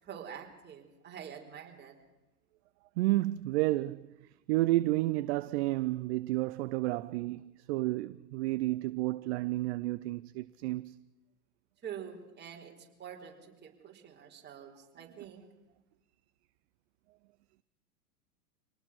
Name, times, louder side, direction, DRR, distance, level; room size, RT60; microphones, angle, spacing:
voice 1, 0.0-1.9 11.8-15.4, right 8 dB, 25° right, 4.5 m, -46 dB
voice 2, 3.0-4.1 4.5-11.0, right 18 dB, 45° right, 0.7 m, -31 dB
26.0 x 19.0 x 6.3 m
hypercardioid pair, 105°, 45 cm